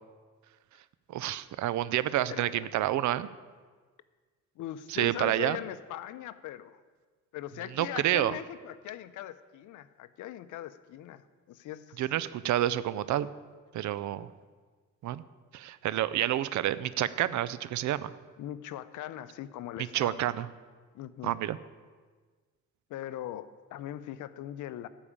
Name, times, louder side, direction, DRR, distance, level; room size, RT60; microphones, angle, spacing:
voice 1, 1.1-3.3 4.9-5.6 7.8-8.3 12.0-13.3 13.7-14.3 15.0-15.2 15.5-18.1 19.9-20.5 21.2-21.6, right 13 dB, 70° right, 16 dB, 0.6 m, -29 dB
voice 2, 2.3-2.7 4.6-6.8 7.3-12.0 18.4-20.3 20.9-21.4 22.9-24.9, left 12 dB, 80° left, 14 dB, 0.6 m, -40 dB
12.0 x 5.0 x 8.7 m, 1.5 s
cardioid pair, 90°, 30 cm